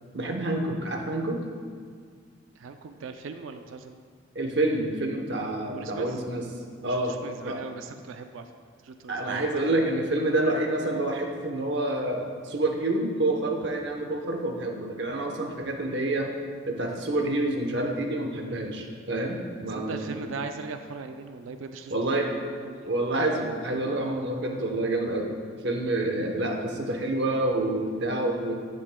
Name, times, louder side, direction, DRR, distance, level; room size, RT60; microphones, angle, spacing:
voice 1, 0.1-1.4 4.3-6.5 6.8-7.2 7.4-7.6 9.1-16.3 16.7-20.3 21.9-22.3 22.9-25.4 25.6-28.5, right 2 dB, 55° right, 2 dB, 0.8 m, -28 dB
voice 2, 2.6-4.0 5.7-6.1 7.1-8.4 8.8-9.5 19.7-22.3 22.6-22.9, right 4 dB, 75° right, 7 dB, 0.4 m, -39 dB
11.0 x 7.6 x 2.2 m, 2.1 s
head